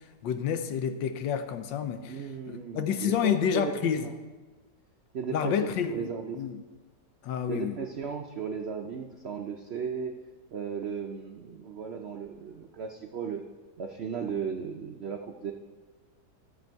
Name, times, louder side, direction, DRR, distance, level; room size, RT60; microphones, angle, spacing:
voice 1, 0.2-2.2 2.5-4.1 5.3-6.6 7.2-7.8, left 8 dB, 90° left, 9 dB, 1.4 m, -29 dB
voice 2, 2.0-4.1 5.1-6.4 7.5-10.1 10.5-13.4 13.8-15.5, right 6 dB, 90° right, 3 dB, 0.5 m, -36 dB
13.0 x 6.9 x 4.6 m, 1.3 s
omnidirectional pair, 1.9 m